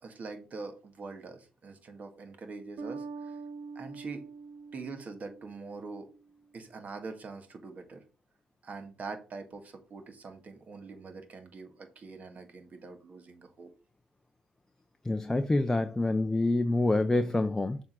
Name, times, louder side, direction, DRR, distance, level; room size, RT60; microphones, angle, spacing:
voice 1, 0.0-3.4 3.7-4.2 4.7-6.1 6.5-8.0 8.6-13.7, right 4 dB, 40° right, 1.7 m, -44 dB
Bass guitar, 2.8-6.3, right 4 dB, 60° right, 0.9 m, -44 dB
voice 2, 15.0-17.8, left 2 dB, 15° left, 0.6 m, -27 dB
7.0 x 3.7 x 6.1 m
cardioid pair, 85°, 4 cm